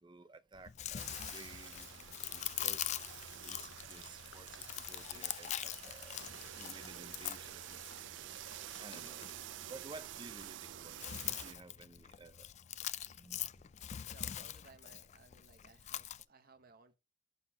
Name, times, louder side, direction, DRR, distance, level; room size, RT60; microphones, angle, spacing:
voice 1, 0.0-2.9 3.4-6.2 6.5-7.8 8.8-9.3 9.7-11.0 11.4-12.5 13.0-13.8, right 3 dB, 25° right, 0.6 m, -54 dB
Chewing mastication, 0.5-16.2, left 11 dB, 35° left, 0.3 m, -44 dB
sound 1, 1.0-9.4, left 6 dB, 70° left, 0.8 m, -60 dB
sound 2, 1.0-11.5, right 12 dB, 65° right, 0.3 m, -49 dB
voice 2, 13.9-17.0, right 4 dB, 50° right, 1.1 m, -62 dB
6.7 x 5.4 x 5.6 m
head